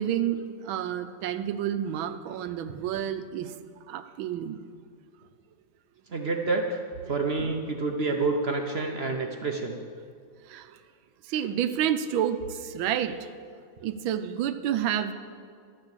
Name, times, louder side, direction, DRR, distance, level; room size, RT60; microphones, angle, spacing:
voice 1, 0.0-3.5 3.9-4.6 7.1-7.2 10.5-10.7 11.3-13.3 13.8-15.1, right 10 dB, 80° right, 11 dB, 1.4 m, -29 dB
voice 2, 6.1-6.8 7.1-9.8, right 3 dB, 65° right, 3 dB, 0.6 m, -28 dB
12.0 x 9.7 x 7.3 m, 2.2 s
omnidirectional pair, 2.2 m